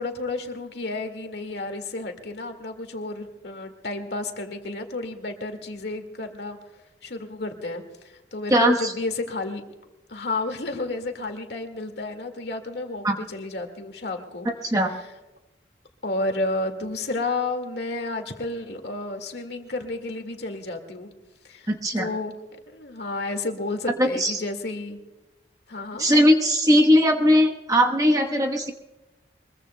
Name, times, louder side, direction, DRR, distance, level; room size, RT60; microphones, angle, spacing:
voice 1, 0.0-6.6 7.0-9.6 10.1-14.5 14.9-15.1 16.0-21.1 21.4-22.3 22.7-25.0 25.7-26.1, left 2 dB, 60° left, 5 dB, 1.9 m, -31 dB
voice 2, 8.5-8.9 13.0-13.2 14.6-14.9 21.7-22.1 24.0-24.4 26.0-28.7, equal, 20° right, 2 dB, 1.1 m, -19 dB
23.5 x 22.0 x 2.2 m, 1.1 s
head